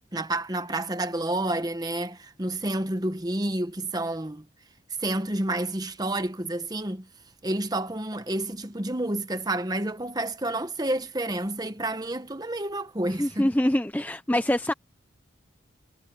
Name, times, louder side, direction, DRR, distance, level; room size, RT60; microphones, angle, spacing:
voice 1, 0.1-4.4 5.0-7.1 7.4-13.5, right 1 dB, 20° right, 1.2 m, -29 dB
voice 2, 13.2-14.7, left 1 dB, 10° left, 0.5 m, -24 dB
head